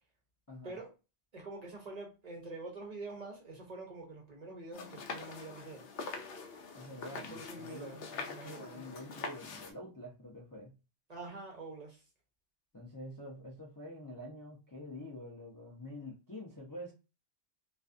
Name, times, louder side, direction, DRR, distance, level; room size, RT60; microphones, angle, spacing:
voice 1, 1.3-5.9 7.1-8.7 11.1-12.0, right 3 dB, 45° right, 0 dB, 0.7 m, -46 dB
sound 1, 4.7-9.7, left 4 dB, 65° left, 0.7 m, -44 dB
voice 2, 6.7-10.7 12.7-16.9, left 1 dB, 25° left, -4 dB, 0.4 m, -47 dB
2.4 x 2.3 x 2.4 m, 0.30 s
omnidirectional pair, 1.1 m